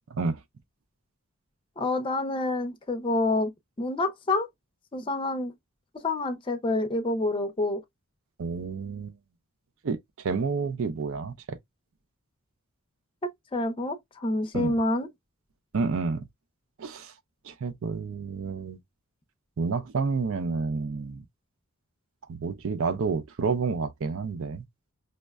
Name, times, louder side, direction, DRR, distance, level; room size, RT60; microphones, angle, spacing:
voice 1, 1.8-3.5 3.8-4.5 4.9-5.5 6.0-7.8 13.5-15.1, left 2 dB, 25° left, 0.5 m, -27 dB
voice 2, 8.4-9.1 9.8-10.0 10.2-11.6 14.5-14.8 15.7-16.2 16.8-17.1 17.5-18.8 19.6-21.2 22.3-24.6, right 4 dB, 60° right, 0.4 m, -29 dB
5.2 x 2.1 x 2.2 m
head